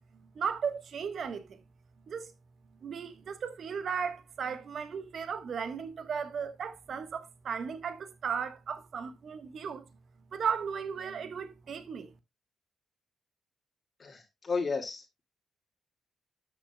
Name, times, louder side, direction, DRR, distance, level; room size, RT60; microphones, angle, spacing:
voice 1, 0.3-1.5 2.1-2.3 2.8-9.8 10.3-12.1, right 6 dB, 60° right, 1.3 m, -35 dB
voice 2, 14.0-15.2, left 4 dB, 45° left, 2.1 m, -33 dB
13.0 x 6.9 x 2.3 m
supercardioid pair, 60°, 0 cm